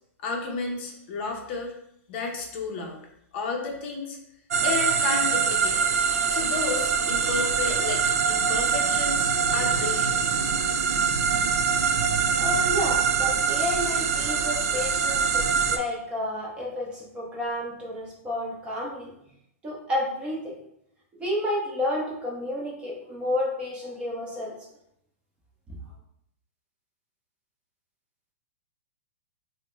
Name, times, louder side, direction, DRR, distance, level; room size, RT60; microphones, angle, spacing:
voice 1, 0.2-1.7 2.1-3.0 3.3-4.2 4.6-5.8 6.3-10.4, left 4 dB, 45° left, 1 dB, 0.6 m, -32 dB
sound 1, 4.5-15.8, right 6 dB, 90° right, 0.4 m, -24 dB
voice 2, 12.4-19.1 19.6-20.6 21.2-24.6, left 1 dB, 15° right, -4 dB, 0.7 m, -31 dB
3.5 x 2.1 x 3.0 m, 0.75 s
hypercardioid pair, 160°, 8 cm